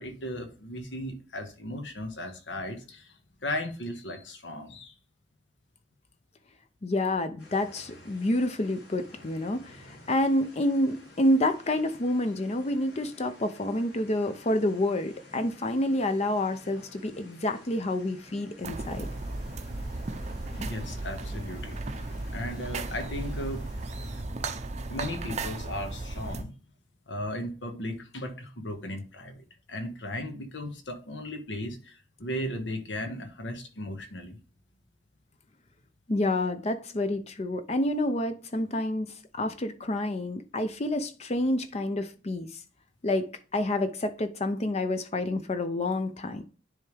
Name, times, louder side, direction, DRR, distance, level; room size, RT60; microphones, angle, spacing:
voice 1, 0.0-4.9 20.6-23.7 24.9-26.6 27.1-34.4, left 1 dB, 85° left, 1.4 m, -36 dB
voice 2, 6.8-19.1 36.1-42.6 43.0-46.4, left 1 dB, 35° left, 0.6 m, -28 dB
sound 1, 7.4-24.2, left 2 dB, 70° left, 2.8 m, -52 dB
sound 2, 18.6-26.4, right 2 dB, 40° right, 0.6 m, -35 dB
10.0 x 3.5 x 3.3 m
head